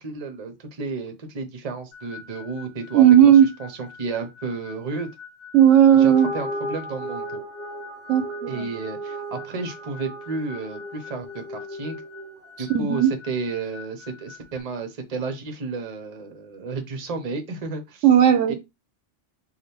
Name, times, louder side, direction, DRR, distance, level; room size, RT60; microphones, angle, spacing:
voice 1, 0.0-3.3 3.6-5.1 5.9-7.4 8.5-12.0 12.6-18.0 18.5-18.6, right 4 dB, 35° right, 0.7 m, -32 dB
sound 1, 1.9-14.6, left 6 dB, 40° left, 1.1 m, -46 dB
voice 2, 2.9-3.5 5.5-6.3 8.1-8.6 12.7-13.1 18.0-18.5, right 10 dB, 80° right, 0.9 m, -15 dB
sound 2, 5.9-12.5, equal, 5° right, 1.5 m, -35 dB
3.4 x 2.4 x 4.2 m
omnidirectional pair, 1.3 m